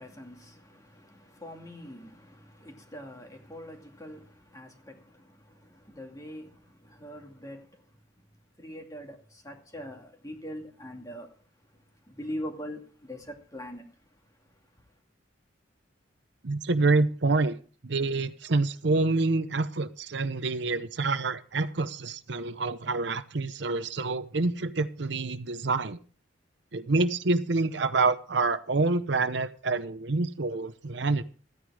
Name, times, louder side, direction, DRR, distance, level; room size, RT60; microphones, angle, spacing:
voice 1, 0.0-7.9 8.6-11.3 11.7-13.8 14.5-14.6, equal, 20° left, 2.3 m, -43 dB
voice 2, 16.4-17.5 17.8-26.0 26.7-31.2, right 3 dB, 60° right, 0.8 m, -27 dB
14.5 x 9.9 x 4.9 m
head